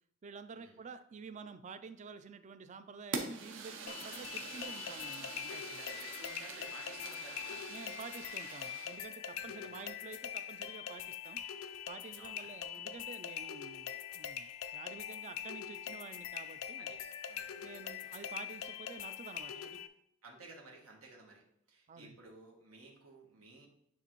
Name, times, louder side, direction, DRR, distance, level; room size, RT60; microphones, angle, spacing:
voice 1, 0.2-5.8 7.7-11.4 11.9-16.9 17.6-19.8 21.9-22.2, right 5 dB, 35° right, 12 dB, 0.3 m, -50 dB
Fire, 3.1-9.0, right 4 dB, 65° right, 0.7 m, -45 dB
sound 1, 3.9-19.9, left 9 dB, 75° left, 0.4 m, -43 dB
voice 2, 5.5-7.7 9.3-9.8 12.1-12.9 16.8-17.0 17.3-17.7 18.0-18.1 20.2-21.4 21.7-23.7, right 2 dB, 90° right, -1 dB, 1.2 m, -55 dB
9.4 x 3.3 x 3.0 m, 0.76 s
head